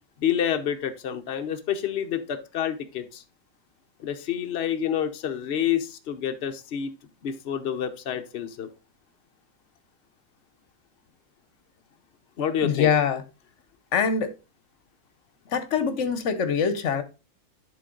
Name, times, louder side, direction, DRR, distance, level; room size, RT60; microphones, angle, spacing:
voice 1, 0.2-3.2 4.0-6.9 7.2-8.7 12.4-12.9, left 9 dB, 80° left, 0.5 m, -28 dB
voice 2, 12.6-13.2 13.9-14.3 15.5-17.0, left 6 dB, 55° left, 0.8 m, -24 dB
10.5 x 3.9 x 3.8 m
omnidirectional pair, 2.0 m